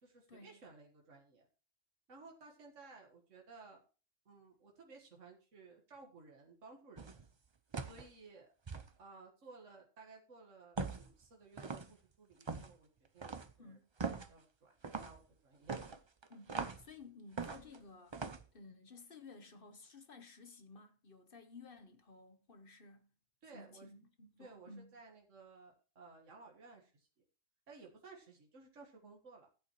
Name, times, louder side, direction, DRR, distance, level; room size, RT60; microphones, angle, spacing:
voice 1, 0.0-1.5 2.1-3.8 4.3-7.2 7.9-8.5 9.0-13.8 14.3-16.0 23.4-23.9 24.4-27.1 27.7-29.5, right 4 dB, 70° right, 2.0 m, -57 dB
sound 1, 7.0-7.2 7.7-8.1 8.7-8.9 10.8-11.1 11.6-11.9 12.4-12.7 13.2-13.5 14.0-14.3 14.8-15.2 15.7-16.9 17.4-17.8 18.1-18.4, right 4 dB, 30° right, 0.5 m, -41 dB
voice 2, 16.3-18.2 18.5-23.1 23.5-24.9, left 3 dB, 45° left, 1.3 m, -55 dB
14.5 x 8.6 x 3.0 m
omnidirectional pair, 1.3 m